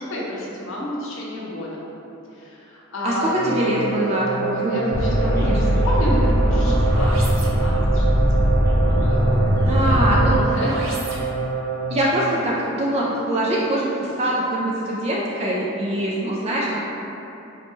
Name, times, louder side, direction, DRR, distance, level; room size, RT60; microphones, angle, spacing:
voice 1, 0.0-1.8 2.3-3.5 4.4-8.0 8.7-10.8, left 1 dB, 70° left, -5 dB, 0.7 m, -30 dB
voice 2, 3.0-4.8 5.3-5.6 9.6-10.4 11.9-16.8, right 1 dB, 30° right, -4 dB, 0.3 m, -23 dB
sound 1, 3.3-12.1, right 4 dB, 75° right, 0.6 m, -27 dB
sound 2, 4.9-10.4, equal, 15° left, 0.7 m, -19 dB
3.9 x 2.2 x 3.0 m, 3.0 s
head